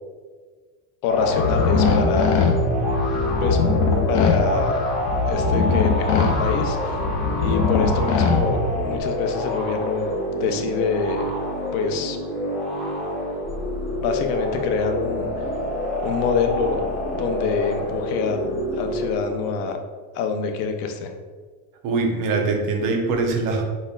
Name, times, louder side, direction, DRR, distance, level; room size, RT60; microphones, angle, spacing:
voice 1, 1.0-2.5 3.4-3.6 4.1-4.8 5.3-7.1 7.4-11.2 11.7-12.2 14.0-15.4 16.0-16.8 17.1-19.8 20.1-21.1, left 5 dB, 75° left, 5 dB, 0.8 m, -25 dB
sound 1, 1.1-19.5, left 1 dB, ahead, 1.1 m, -27 dB
sound 2, 1.3-9.0, left 4 dB, 40° left, 0.5 m, -22 dB
voice 2, 21.8-23.6, right 3 dB, 45° right, 2 dB, 0.8 m, -22 dB
5.0 x 4.2 x 2.4 m, 1.5 s
cardioid pair, 145°, 47 cm